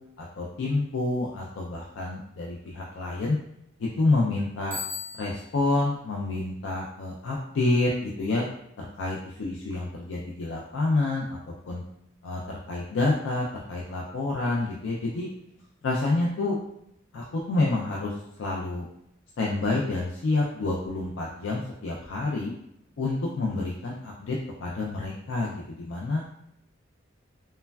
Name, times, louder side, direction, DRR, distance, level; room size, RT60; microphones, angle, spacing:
voice 1, 0.2-3.4 3.8-4.8 5.2-8.4 8.8-11.4 11.7-11.8 12.2-15.3 15.8-16.6 17.1-18.9 19.4-22.5 23.0-26.2, left 2 dB, 85° left, -3 dB, 0.4 m, -28 dB
Bicycle bell, 4.7-5.7, left 4 dB, 10° right, 0.4 m, -36 dB
3.2 x 2.1 x 2.2 m, 0.78 s
head